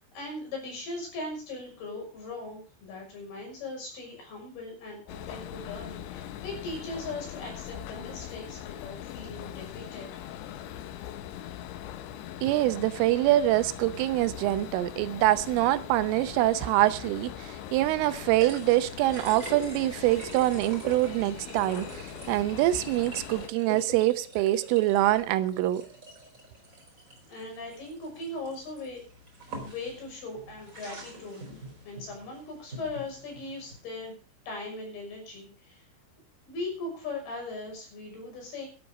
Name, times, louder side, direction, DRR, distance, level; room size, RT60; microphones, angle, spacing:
voice 1, 0.1-10.1 27.3-29.0 29.6-34.1 34.5-35.8 36.5-38.7, left 2 dB, 50° left, 7.8 m, -39 dB
sound 1, 5.1-23.5, left 11 dB, 75° left, 3.3 m, -41 dB
voice 2, 12.4-25.8, right 15 dB, 85° right, 3.4 m, -25 dB
sound 2, 17.1-33.8, right 2 dB, 15° right, 3.9 m, -45 dB
12.5 x 12.5 x 5.2 m
omnidirectional pair, 5.6 m